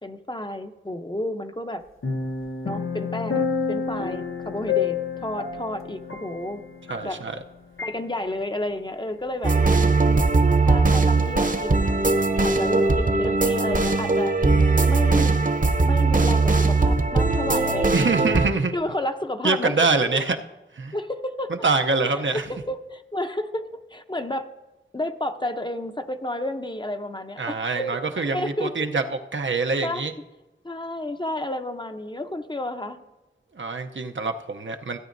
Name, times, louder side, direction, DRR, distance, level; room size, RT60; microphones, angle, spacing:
voice 1, 0.0-1.8 2.6-6.6 7.0-7.2 7.8-9.6 10.0-11.8 12.4-14.3 14.9-15.4 15.8-18.1 18.7-19.7 20.9-21.5 22.0-24.5 24.9-28.9 29.8-30.1 30.6-33.0, left 1 dB, 20° left, 7 dB, 0.7 m, -31 dB
sound 1, 2.0-7.5 7.8-8.0, left 5 dB, 90° left, 0.8 m, -29 dB
voice 2, 6.9-7.4 17.9-18.7 19.4-20.4 20.7-20.9 21.6-22.4 27.4-30.1 33.5-35.0, right 3 dB, 70° right, 5 dB, 0.7 m, -24 dB
sound 2, 9.4-18.5, right 3 dB, 40° right, 0.8 m, -20 dB
16.5 x 9.0 x 2.6 m, 1.0 s
wide cardioid pair, 55°, 20 cm